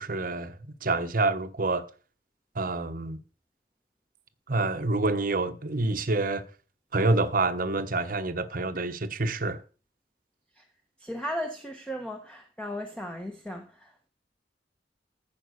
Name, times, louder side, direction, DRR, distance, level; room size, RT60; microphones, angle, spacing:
voice 1, 0.0-1.9 2.5-3.2 4.5-6.4 6.9-9.6, right 2 dB, 50° right, 1.1 m, -27 dB
voice 2, 11.0-14.1, equal, 5° left, 1.2 m, -36 dB
14.5 x 5.3 x 6.5 m
head